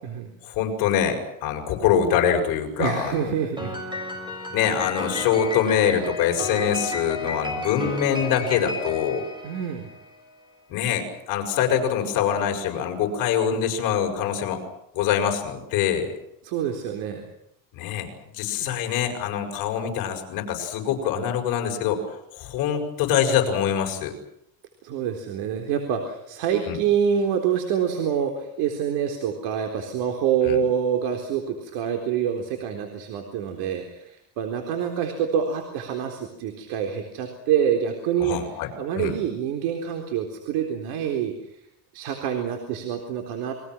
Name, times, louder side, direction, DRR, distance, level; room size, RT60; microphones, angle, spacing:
voice 1, 0.4-3.3 4.5-9.2 10.7-14.6 14.9-16.1 17.7-22.0 22.3-24.1 26.7-26.8 30.4-30.6 38.2-38.7 39.0-39.1, left 8 dB, 55° left, 3 dB, 6.5 m, -24 dB
voice 2, 2.8-3.8 9.4-9.9 16.4-17.3 18.6-18.8 24.8-38.4 38.8-41.3 41.9-43.5, right 8 dB, 70° right, 3 dB, 4.0 m, -26 dB
Piano, 3.6-10.1, left 1 dB, 10° right, 6.5 m, -32 dB
29.5 x 23.5 x 6.3 m, 0.77 s
cardioid pair, 160°, 40 cm